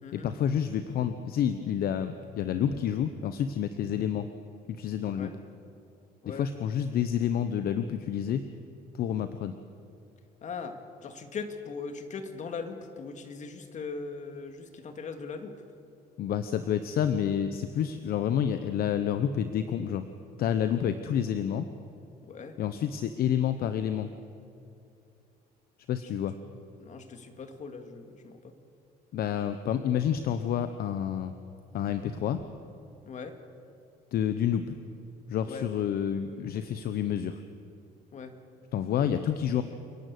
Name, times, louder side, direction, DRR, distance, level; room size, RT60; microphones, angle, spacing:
voice 1, 0.1-4.3 4.7-5.3 6.2-8.4 8.9-9.5 16.2-20.1 20.4-21.7 22.6-24.1 25.9-26.3 29.1-31.3 31.7-32.4 34.1-34.8 35.3-37.4 38.7-39.6, left 9 dB, 65° left, 10 dB, 0.9 m, -29 dB
voice 2, 10.4-15.6 22.3-22.5 26.8-28.5 33.1-33.3 35.5-35.7 38.1-38.3, left 4 dB, 45° left, 7 dB, 2.2 m, -40 dB
28.5 x 11.0 x 8.4 m, 2.6 s
cardioid pair, 110°, 17 cm